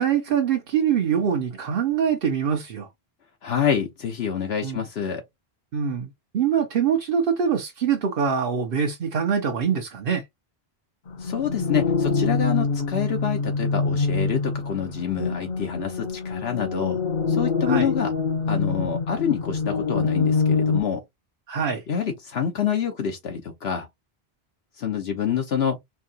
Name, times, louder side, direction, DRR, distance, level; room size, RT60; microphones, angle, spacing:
voice 1, 0.0-2.9 4.6-4.8 5.7-10.2 17.7-17.9 21.5-21.8, right 7 dB, 65° right, 0.9 m, -24 dB
voice 2, 3.4-5.2 11.2-17.0 17.3-18.1 18.5-21.0 21.9-23.9 24.8-25.8, left 8 dB, 75° left, 1.1 m, -27 dB
sound 1, 11.1-20.8, left 4 dB, 55° left, 0.8 m, -25 dB
4.5 x 2.8 x 2.8 m
omnidirectional pair, 1.0 m